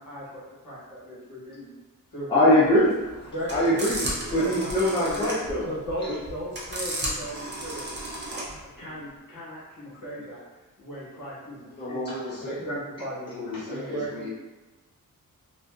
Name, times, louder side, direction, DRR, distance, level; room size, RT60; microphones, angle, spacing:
voice 1, 0.0-1.7 2.1-2.6 3.3-3.8 4.3-5.3 5.6-7.9 8.3-10.4 10.8-12.0 12.4-14.3, equal, 75° left, -8 dB, 1.3 m, -37 dB
voice 2, 2.3-5.6, left 1 dB, 15° left, -8 dB, 0.5 m, -22 dB
sound 1, 2.7-8.6, right 1 dB, 35° right, 0.6 m, -34 dB
voice 3, 11.5-12.6 13.2-14.3, left 1 dB, 30° left, -9 dB, 1.0 m, -35 dB
2.5 x 2.3 x 2.4 m, 1.2 s
wide cardioid pair, 135°, 33 cm